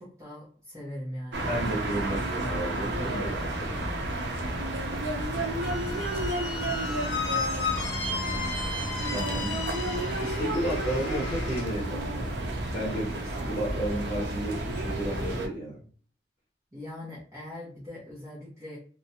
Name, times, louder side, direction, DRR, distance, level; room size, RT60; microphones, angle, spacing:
voice 1, 0.0-1.5 16.7-18.8, left 1 dB, 15° right, -8 dB, 0.7 m, -41 dB
sound 1, 1.3-15.5, right 1 dB, 75° right, 0.5 m, -31 dB
voice 2, 1.5-3.9 9.1-9.6 10.2-12.2 12.7-15.8, right 1 dB, 25° left, -7 dB, 0.9 m, -33 dB
Squeak, 5.6-11.7, left 4 dB, 85° left, 0.7 m, -34 dB
2.5 x 2.1 x 2.7 m, 0.43 s
head